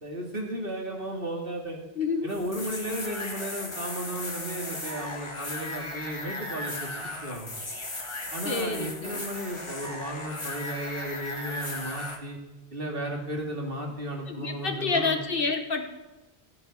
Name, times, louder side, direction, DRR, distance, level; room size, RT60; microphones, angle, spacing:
voice 1, 0.0-1.8 2.2-7.6 8.3-12.4 12.7-15.2, right 1 dB, 60° right, 1 dB, 2.5 m, -34 dB
voice 2, 1.9-2.3 8.4-9.2 14.3-15.8, left 4 dB, 60° left, 6 dB, 1.4 m, -28 dB
sound 1, 2.3-12.2, left 2 dB, 30° left, 1.5 m, -36 dB
15.0 x 9.7 x 5.4 m, 1.1 s
omnidirectional pair, 1.1 m